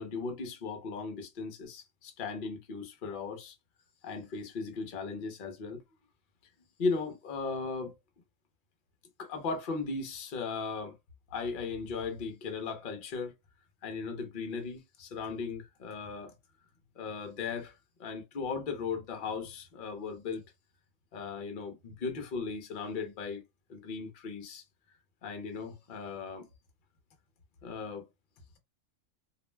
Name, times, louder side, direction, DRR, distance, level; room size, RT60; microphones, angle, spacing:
voice 1, 0.0-3.6 4.0-5.8 6.8-7.9 9.2-11.0 11.3-13.3 13.8-16.3 17.0-17.7 18.0-20.4 21.1-23.4 23.7-24.6 25.2-26.5 27.6-28.1, left 4 dB, 50° left, 0.7 m, -37 dB
2.5 x 2.0 x 3.2 m
omnidirectional pair, 1.4 m